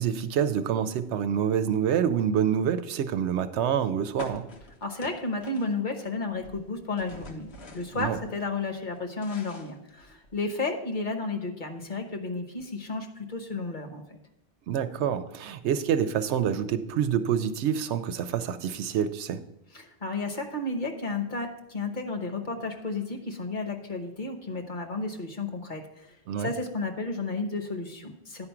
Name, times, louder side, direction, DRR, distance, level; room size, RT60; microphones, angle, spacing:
voice 1, 0.0-4.5 7.9-8.2 14.7-19.4 26.3-26.5, right 8 dB, 90° right, 11 dB, 0.9 m, -27 dB
sound 1, 4.2-6.1 6.3-8.5 8.9-10.4, left 2 dB, 70° left, 1.3 m, -45 dB
voice 2, 4.8-14.2 19.7-26.0 26.4-28.5, left 3 dB, 45° left, 4 dB, 1.1 m, -32 dB
10.0 x 4.9 x 5.8 m, 0.87 s
omnidirectional pair, 1.1 m